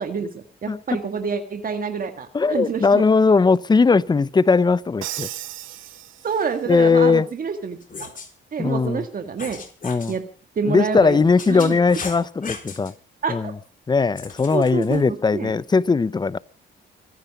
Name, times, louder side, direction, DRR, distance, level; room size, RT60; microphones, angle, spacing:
voice 1, 0.0-3.0 6.2-8.1 8.5-9.6 10.1-10.2 10.6-11.2 11.5-11.8 13.2-13.5 14.5-15.5, right 5 dB, 45° right, 1.9 m, -27 dB
voice 2, 2.3-5.3 6.7-7.3 8.6-9.0 9.8-10.1 10.7-12.9 13.3-13.5 13.9-16.4, left 4 dB, 20° left, 0.7 m, -19 dB
Crash cymbal, 5.0-6.7, right 14 dB, 80° right, 1.0 m, -35 dB
sound 1, 7.8-8.3 9.4-10.2 11.0-12.9 14.2-15.0, left 5 dB, 45° left, 4.1 m, -37 dB
24.0 x 10.0 x 5.3 m
cardioid pair, 90°, 20 cm